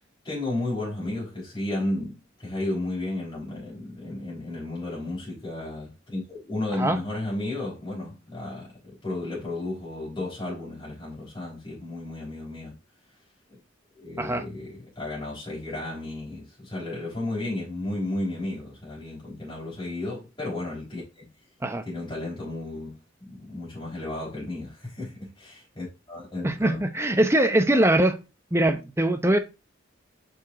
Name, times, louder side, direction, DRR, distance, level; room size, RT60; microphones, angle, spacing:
voice 1, 0.2-12.7 14.0-21.3 21.8-26.8, left 2 dB, 25° left, 3.8 m, -33 dB
voice 2, 26.4-28.2 28.5-29.4, right 1 dB, 15° right, 0.7 m, -22 dB
5.8 x 5.3 x 3.7 m
head